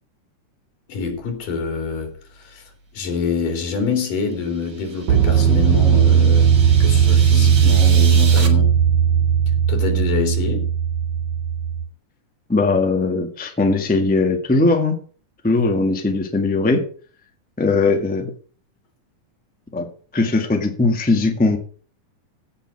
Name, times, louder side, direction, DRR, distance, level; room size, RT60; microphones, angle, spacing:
voice 1, 0.9-2.6 2.9-6.5 6.8-8.7 9.7-10.7, left 5 dB, 85° left, 4 dB, 4.6 m, -26 dB
sound 1, 1.0-1.2 5.1-11.8, right 8 dB, 55° right, 2.8 m, -16 dB
sound 2, 4.3-8.5, right 4 dB, 40° right, 2.2 m, -33 dB
voice 2, 12.5-15.0 15.4-16.8 17.6-18.3 19.7-19.9 20.1-21.6, left 3 dB, 5° left, 4 dB, 0.8 m, -19 dB
16.5 x 6.6 x 6.0 m, 0.42 s
omnidirectional pair, 3.7 m